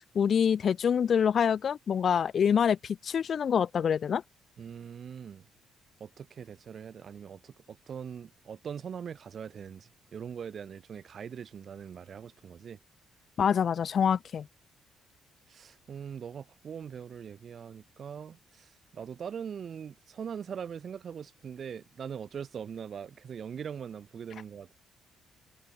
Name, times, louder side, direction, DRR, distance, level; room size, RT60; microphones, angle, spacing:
voice 1, 0.1-4.2 13.4-14.5, left 7 dB, 55° left, 0.4 m, -26 dB
voice 2, 4.6-5.5 6.0-12.8 15.5-24.7, right 7 dB, 55° right, 3.5 m, -41 dB
cardioid pair, 90°, 0 cm